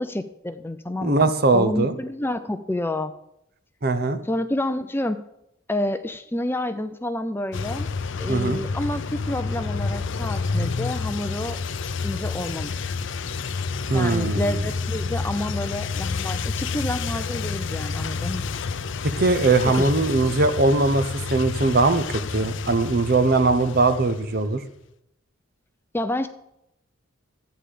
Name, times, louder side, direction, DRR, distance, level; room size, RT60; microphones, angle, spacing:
voice 1, 0.0-3.1 4.2-5.2 5.7-7.9 8.2-11.6 12.0-13.0 13.9-18.5 19.6-19.9 25.9-26.3, left 1 dB, 10° left, 9 dB, 0.5 m, -29 dB
voice 2, 1.0-1.9 3.8-4.2 8.3-8.6 13.9-14.6 19.0-24.6, right 3 dB, 45° right, 11 dB, 0.8 m, -21 dB
sound 1, 7.5-24.6, left 4 dB, 60° left, 0.5 m, -29 dB
13.5 x 9.0 x 5.1 m, 0.81 s
head